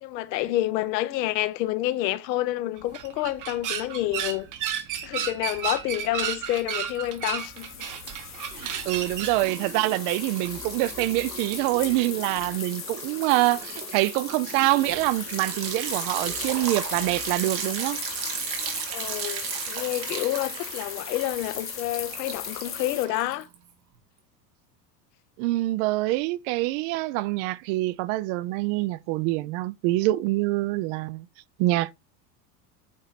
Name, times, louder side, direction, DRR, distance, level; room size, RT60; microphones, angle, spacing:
voice 1, 0.0-4.5 5.0-7.9 8.6-8.8 18.9-23.5, left 15 dB, 80° left, 0.8 m, -29 dB
sound 1, 2.8-9.4, right 8 dB, 40° right, 1.0 m, -33 dB
Liquid, 6.6-7.2 7.5-23.7, right 7 dB, 85° right, 1.8 m, -36 dB
sound 2, 7.4-23.1, left 9 dB, 25° left, 0.8 m, -38 dB
voice 2, 8.5-18.0 25.4-31.3 31.6-31.9, right 18 dB, 55° right, 0.5 m, -25 dB
8.4 x 3.1 x 4.0 m
supercardioid pair, 105°, 49 cm